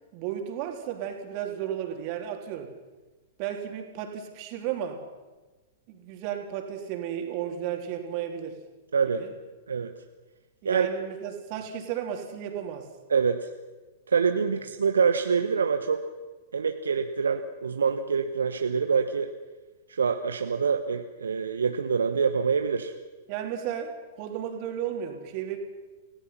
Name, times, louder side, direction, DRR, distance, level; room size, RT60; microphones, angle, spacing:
voice 1, 0.1-2.7 3.4-5.0 5.9-8.6 9.2-9.3 10.6-12.9 23.3-25.6, right 9 dB, 40° right, 3 dB, 3.7 m, -33 dB
voice 2, 8.9-9.2 9.7-9.9 10.6-10.9 13.1-13.5 14.1-16.0 16.5-19.3 19.9-22.9, right 6 dB, 70° right, 7 dB, 1.1 m, -25 dB
29.0 x 17.5 x 5.9 m, 1.2 s
figure-of-eight pair, 100°, 0 cm